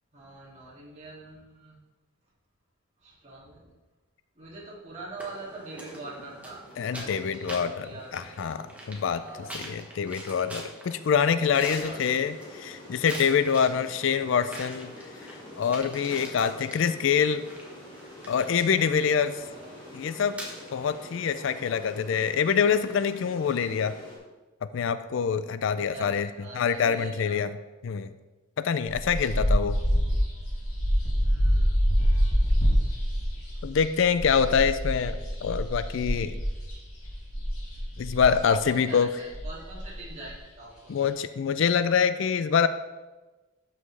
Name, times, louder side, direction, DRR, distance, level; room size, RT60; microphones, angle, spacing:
voice 1, 0.1-1.8 3.0-3.7 4.4-8.4 9.1-9.5 11.2-12.0 19.4-20.0 25.7-27.4 31.2-31.8 38.5-40.9, right 2 dB, 30° right, -6 dB, 2.4 m, -44 dB
sound 1, 5.2-21.9, right 1 dB, 5° right, 1.2 m, -44 dB
voice 2, 6.8-9.2 9.5-14.9 15.6-17.4 18.3-19.4 19.9-20.4 20.7-23.9 24.7-26.3 26.5-27.6 27.8-28.1 28.6-29.8 33.6-36.4 38.0-39.1 40.9-42.7, left 6 dB, 60° left, 12 dB, 0.3 m, -25 dB
sound 2, 11.5-24.2, left 1 dB, 25° left, 2.5 m, -47 dB
sound 3, 28.9-38.6 39.0-39.1 39.3-40.3, equal, 85° left, 2.4 m, -26 dB
13.0 x 5.5 x 3.3 m, 1.2 s
head